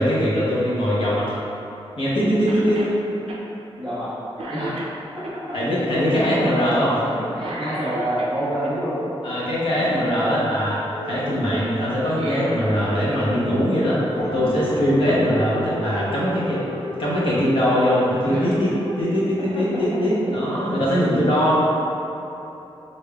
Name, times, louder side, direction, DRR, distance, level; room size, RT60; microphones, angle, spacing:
voice 1, 0.0-1.4 2.0-2.9 5.5-7.1 9.2-14.0 14.3-16.6 17.0-21.6, equal, 60° left, -8 dB, 0.9 m, -21 dB
voice 2, 2.1-2.8 3.8-4.1 4.5-4.9 5.1-5.6 6.2-6.7 7.0-9.0 18.3-18.5 19.5-20.0 20.9-21.0, equal, 5° left, -18 dB, 1.4 m, -29 dB
Cough, 2.5-3.0 3.3-3.4 3.9-4.1 4.4-5.4 7.3-8.7 12.0-13.3 13.6-13.7 14.8-14.9, right 1 dB, 70° right, 0.4 m, -35 dB
sound 1, 10.8-19.0, equal, 85° left, 0.8 m, -33 dB
4.9 x 2.6 x 2.3 m, 3.0 s
wide cardioid pair, 170°, 10 cm